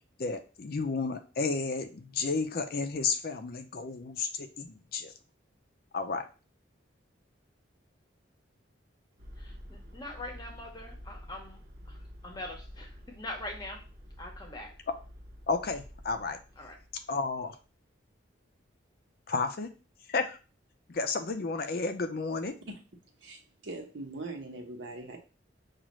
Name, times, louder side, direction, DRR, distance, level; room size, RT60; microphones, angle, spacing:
voice 1, 0.2-5.1 5.9-6.3 15.5-16.4 17.1-17.6 19.3-19.7 20.1-20.4 20.9-22.5, left 4 dB, 50° left, 8 dB, 0.5 m, -32 dB
sound 1, 9.2-17.5, equal, 55° right, 0.9 m, -49 dB
voice 2, 9.4-11.6 11.9-13.8 14.2-14.7 16.6-16.8, left 1 dB, 20° left, 2 dB, 0.8 m, -43 dB
voice 3, 23.2-25.2, right 2 dB, 70° right, 1 dB, 1.0 m, -41 dB
6.1 x 2.5 x 3.0 m, 0.34 s
head